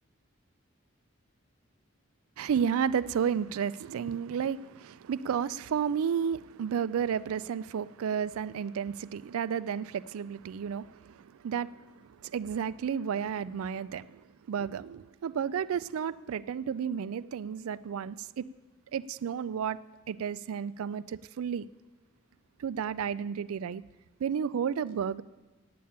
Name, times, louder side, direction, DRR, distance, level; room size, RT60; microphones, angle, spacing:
voice 1, 2.4-11.8 12.2-18.4 18.9-19.8 20.1-21.7 22.6-23.8 24.2-25.2, right 7 dB, 85° right, 18 dB, 0.3 m, -32 dB
8.6 x 8.5 x 8.6 m, 1.2 s
head